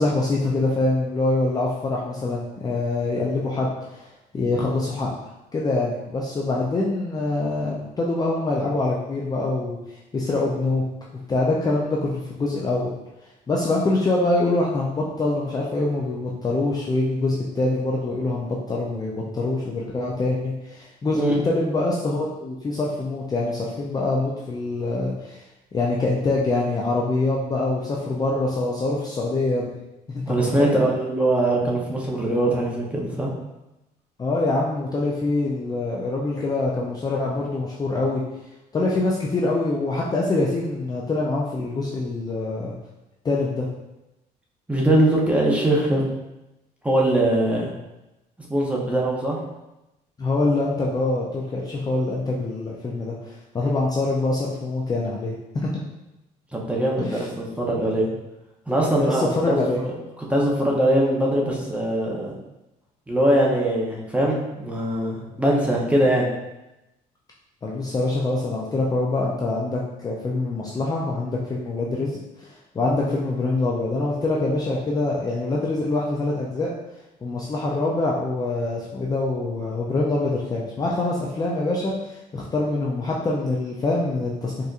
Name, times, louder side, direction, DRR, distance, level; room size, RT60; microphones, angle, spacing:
voice 1, 0.0-4.1 4.3-5.1 5.5-9.8 10.1-10.8 11.3-12.9 13.5-25.4 25.7-29.7 30.1-30.8 34.2-38.2 38.7-42.7 43.2-43.7 50.2-55.8 57.0-57.2 59.0-59.8 67.6-76.7 77.2-84.5, left 2 dB, 20° left, -4 dB, 0.4 m, -24 dB
voice 2, 30.3-33.3 44.7-46.1 46.8-47.7 48.4-49.4 56.5-58.1 58.7-59.9 60.3-62.3 63.1-66.3, right 1 dB, 5° right, -3 dB, 0.8 m, -22 dB
4.1 x 2.6 x 2.4 m, 0.95 s
cardioid pair, 110°, 17 cm